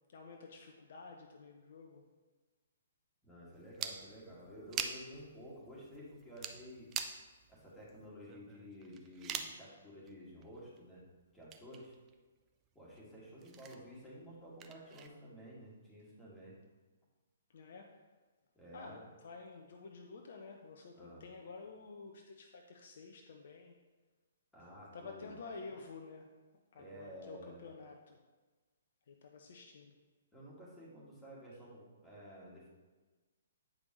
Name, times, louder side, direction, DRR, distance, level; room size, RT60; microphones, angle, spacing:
voice 1, 0.1-2.0 17.5-17.9 18.7-23.7 24.9-26.3 26.7-28.2 29.1-29.9, left 4 dB, 55° left, 2 dB, 0.7 m, -50 dB
voice 2, 3.2-6.9 7.5-11.0 11.3-11.9 12.7-16.5 18.6-19.0 20.9-21.3 24.5-25.3 26.7-27.6 30.3-32.7, equal, 5° left, -9 dB, 2.3 m, -52 dB
sound 1, 3.5-9.6 10.1-10.2 10.4-10.9 11.2-12.2 12.5-15.1, right 8 dB, 25° right, 0.5 m, -45 dB
8.3 x 5.1 x 3.2 m, 1.3 s
figure-of-eight pair, 125°, 0 cm